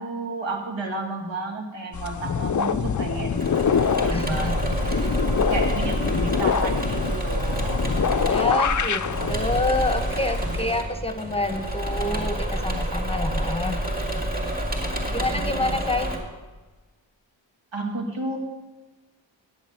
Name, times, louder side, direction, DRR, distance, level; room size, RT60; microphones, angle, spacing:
voice 1, 0.0-3.6 4.0-7.9 15.0-15.7 17.7-18.4, right 2 dB, 70° right, 1 dB, 2.3 m, -32 dB
sound 1, 1.9-10.8, left 7 dB, 40° left, 0.5 m, -25 dB
Engine / Mechanisms, 3.3-16.2, right 1 dB, 20° right, 2.6 m, -28 dB
voice 2, 4.1-4.6 8.3-13.8 15.1-16.1, left 2 dB, 10° left, 7 dB, 1.0 m, -27 dB
9.3 x 7.3 x 8.5 m, 1.2 s
wide cardioid pair, 70°, 46 cm